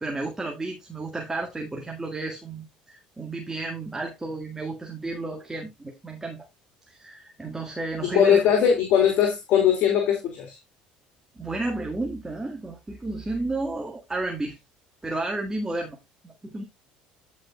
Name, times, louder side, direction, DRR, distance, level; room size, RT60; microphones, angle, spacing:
voice 1, 0.0-6.5 6.9-8.4 11.4-14.6 15.0-16.0 16.2-16.6, right 2 dB, 15° right, 1.8 m, -32 dB
voice 2, 8.0-10.6, left 8 dB, 60° left, 2.5 m, -20 dB
14.5 x 5.2 x 2.3 m
supercardioid pair, 80°, 3 cm